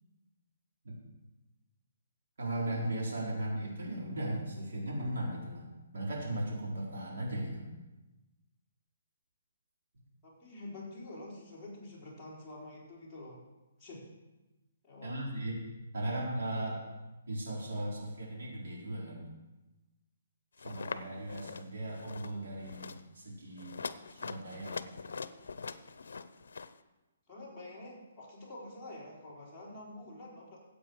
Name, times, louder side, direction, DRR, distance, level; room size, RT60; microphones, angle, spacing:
voice 1, 2.4-5.6 5.9-7.6 15.0-15.6 15.9-16.8 17.3-19.3 20.6-23.8 24.1-24.8, right 1 dB, 70° right, -4 dB, 4.4 m, -37 dB
voice 2, 10.2-13.4 13.8-14.0 14.8-15.5 27.3-30.6, left 2 dB, ahead, -12 dB, 4.2 m, -47 dB
sound 1, 20.6-21.0 21.3-21.6 21.9-22.3 22.6-23.0 23.6-26.7, left 5 dB, 80° left, 0.7 m, -42 dB
14.5 x 8.3 x 4.8 m, 1.1 s
hypercardioid pair, 170°, 0 cm